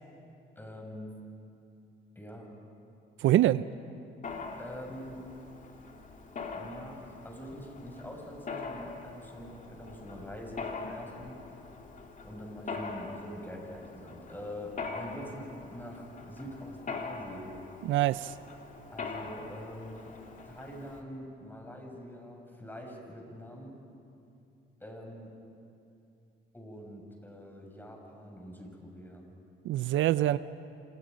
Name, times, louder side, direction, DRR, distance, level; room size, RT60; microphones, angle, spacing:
voice 1, 0.6-1.2 2.1-2.5 4.6-5.3 6.5-11.6 12.2-17.6 18.9-20.1 20.4-23.7 24.8-25.3 26.5-29.3, equal, 10° left, 1 dB, 6.4 m, -44 dB
voice 2, 3.2-3.6 17.9-18.3 29.6-30.4, right 14 dB, 75° right, 15 dB, 0.5 m, -24 dB
Mechanisms, 4.2-21.0, left 4 dB, 40° left, 2.8 m, -43 dB
29.5 x 26.5 x 5.2 m, 2.7 s
cardioid pair, 90°, 20 cm